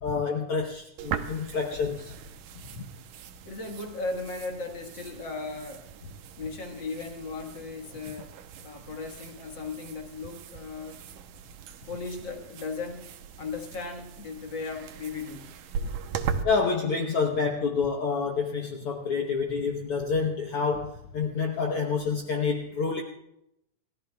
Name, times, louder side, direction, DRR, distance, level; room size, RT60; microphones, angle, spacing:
voice 1, 0.0-2.1 2.7-2.9 16.4-23.0, left 5 dB, 75° left, 2 dB, 1.3 m, -28 dB
sound 1, 1.0-16.4, right 7 dB, 75° right, 2.1 m, -39 dB
voice 2, 3.4-5.9 6.4-8.3 8.6-11.0 11.8-13.1 13.4-15.6, left 3 dB, 50° left, 3 dB, 1.5 m, -36 dB
29.5 x 14.5 x 2.3 m, 0.83 s
omnidirectional pair, 3.9 m